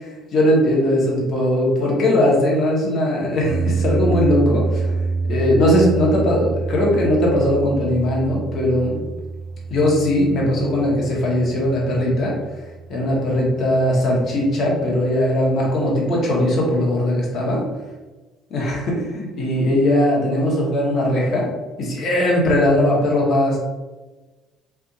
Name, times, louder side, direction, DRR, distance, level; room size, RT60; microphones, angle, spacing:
voice 1, 0.3-4.9 5.2-9.0 9.7-12.3 12.9-17.6 18.5-21.5 21.8-23.6, left 1 dB, 55° left, -3 dB, 1.1 m, -19 dB
sound 1, 3.4-13.6, right 4 dB, 85° left, 1.1 m, -27 dB
3.4 x 2.6 x 2.5 m, 1.2 s
hypercardioid pair, 60°, 0 cm